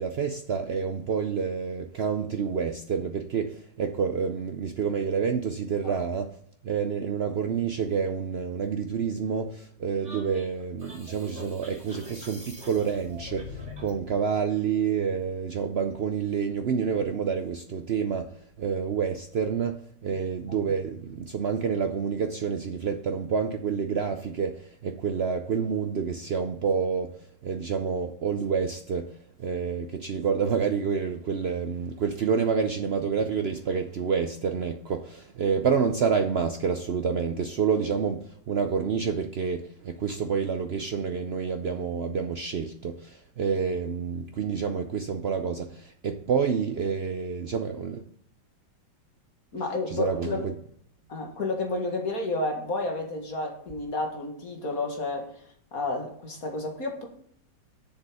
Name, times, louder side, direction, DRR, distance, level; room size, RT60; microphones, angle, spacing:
voice 1, 0.0-6.3 6.6-29.1 29.4-48.0 49.9-50.5, right 6 dB, 80° right, 6 dB, 0.5 m, -28 dB
sound 1, 10.0-14.0, left 2 dB, 40° right, 2.6 m, -43 dB
voice 2, 49.5-50.5 51.1-55.3 55.7-57.1, left 2 dB, 50° left, 2 dB, 2.1 m, -31 dB
7.7 x 7.0 x 5.5 m, 0.64 s
omnidirectional pair, 1.9 m